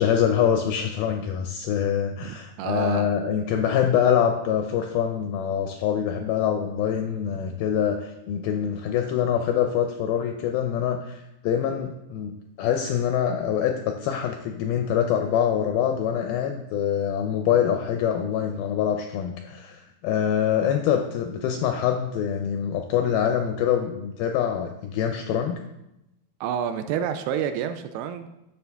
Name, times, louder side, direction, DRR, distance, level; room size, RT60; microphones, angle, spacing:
voice 1, 0.0-25.6, left 9 dB, 85° left, 5 dB, 2.1 m, -25 dB
voice 2, 2.2-3.1 26.4-28.3, right 8 dB, 80° right, 9 dB, 2.4 m, -29 dB
11.5 x 6.7 x 3.4 m, 0.90 s
omnidirectional pair, 4.8 m